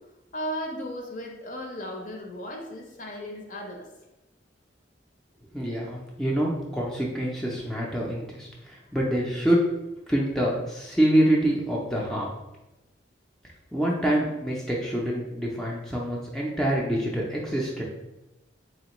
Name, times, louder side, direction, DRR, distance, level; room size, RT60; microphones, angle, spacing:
voice 1, 0.3-3.9, equal, 40° left, 1 dB, 0.6 m, -35 dB
voice 2, 5.5-9.6 10.1-12.3 13.7-17.8, right 1 dB, ahead, -4 dB, 0.4 m, -26 dB
4.2 x 3.0 x 3.0 m, 0.98 s
head